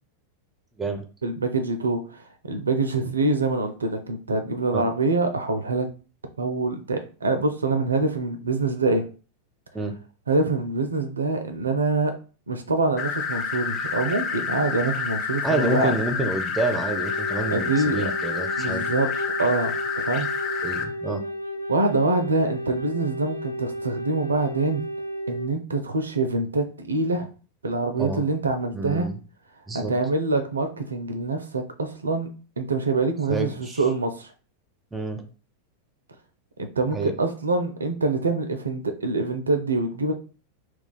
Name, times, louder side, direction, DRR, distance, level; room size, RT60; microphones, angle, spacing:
voice 1, 1.2-5.9 6.4-9.0 10.3-12.1 12.5-15.9 17.5-18.0 18.6-19.1 19.4-20.8 21.7-24.8 25.3-27.3 27.6-29.1 29.7-32.3 32.6-34.3 36.8-40.1, right 3 dB, 75° right, 7 dB, 0.4 m, -25 dB
sound 1, 13.0-20.8, left 6 dB, 30° left, 0.6 m, -29 dB
voice 2, 15.4-18.8 20.6-21.2 28.0-28.2 28.7-29.2 29.7-29.9 33.3-33.8 34.9-35.2 36.9-37.1, right 2 dB, 10° right, 6 dB, 0.5 m, -28 dB
Wind instrument woodwind instrument, 16.9-25.5, equal, 80° left, 0.4 m, -33 dB
2.3 x 2.3 x 3.8 m, 0.36 s
figure-of-eight pair, 90°, 0 cm